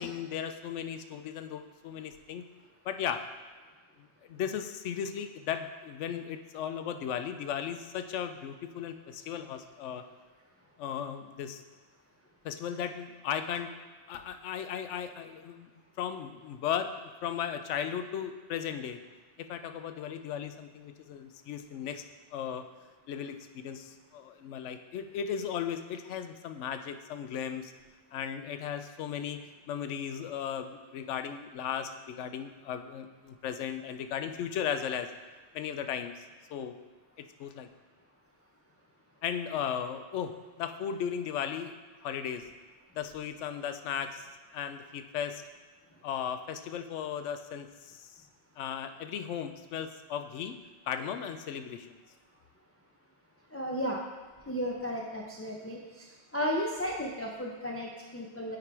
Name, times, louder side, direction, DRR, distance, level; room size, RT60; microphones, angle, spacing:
voice 1, 0.0-2.4 2.8-3.2 4.0-10.0 10.8-11.6 12.4-13.7 14.1-15.7 16.0-16.9 17.2-19.0 19.4-22.0 22.3-22.7 23.1-27.7 28.1-35.1 35.5-36.2 36.5-36.8 37.2-37.7 39.2-41.8 42.0-42.5 42.9-45.4 46.0-48.2 48.6-50.6 50.9-51.9, left 8 dB, 85° left, 8 dB, 0.9 m, -36 dB
voice 2, 53.5-54.0 54.5-55.8 56.3-58.6, equal, 20° left, -2 dB, 0.5 m, -33 dB
8.9 x 3.8 x 4.6 m, 1.4 s
omnidirectional pair, 1.2 m